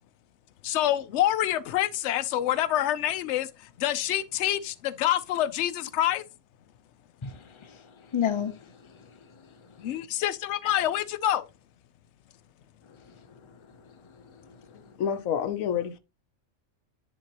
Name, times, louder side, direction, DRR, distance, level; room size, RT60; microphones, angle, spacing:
voice 1, 0.6-6.2 9.8-11.5, left 12 dB, 65° left, 0.8 m, -27 dB
voice 2, 7.2-9.8 13.0-14.8, left 9 dB, 30° left, 0.6 m, -36 dB
voice 3, 15.0-16.0, left 8 dB, 85° left, 1.1 m, -28 dB
10.5 x 3.7 x 2.9 m
omnidirectional pair, 1.4 m